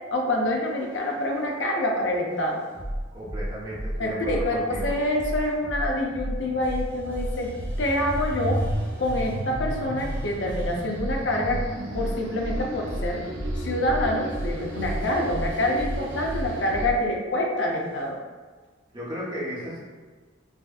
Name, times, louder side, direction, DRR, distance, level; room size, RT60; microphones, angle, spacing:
voice 1, 0.1-2.6 4.0-7.5 7.8-8.6 9.0-11.6 11.9-13.2 13.5-18.2, left 1 dB, 65° left, 0 dB, 0.7 m, -26 dB
sound 1, 0.6-1.6 2.3-17.0 17.6-18.0, equal, 5° left, 0.7 m, -33 dB
voice 2, 3.1-4.9 18.9-19.8, equal, 25° right, -8 dB, 1.1 m, -34 dB
sound 2, 5.8-16.9, right 1 dB, 80° right, 0.6 m, -35 dB
5.0 x 2.5 x 2.4 m, 1.4 s
head